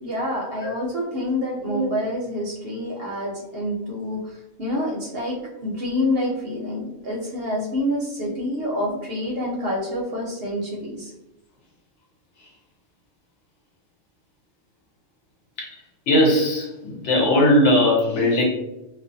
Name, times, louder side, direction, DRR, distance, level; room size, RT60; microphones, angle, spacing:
voice 1, 0.0-5.4 5.6-11.1, left 1 dB, 60° right, -3 dB, 0.7 m, -27 dB
voice 2, 16.1-18.4, left 1 dB, 65° left, -2 dB, 1.0 m, -19 dB
2.4 x 2.2 x 2.5 m, 0.95 s
omnidirectional pair, 1.4 m